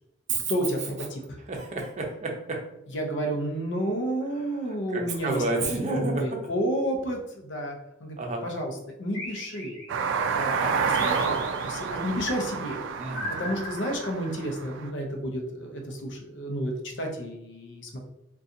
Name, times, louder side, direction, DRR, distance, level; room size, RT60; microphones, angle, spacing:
voice 1, 0.5-1.4 2.9-8.2 8.4-9.8 10.1-11.4 11.6-12.8 13.4-18.0, equal, 65° left, 3 dB, 0.6 m, -31 dB
voice 2, 1.5-2.6 4.9-6.2 8.2-8.4 13.0-13.6, right 2 dB, 35° right, 1 dB, 0.6 m, -30 dB
sound 1, 9.1-10.3 10.9-12.1 13.1-14.6, left 1 dB, 45° left, 1.4 m, -39 dB
sound 2, 9.9-14.9, right 5 dB, 70° right, 0.3 m, -29 dB
2.7 x 2.3 x 3.7 m, 0.90 s
head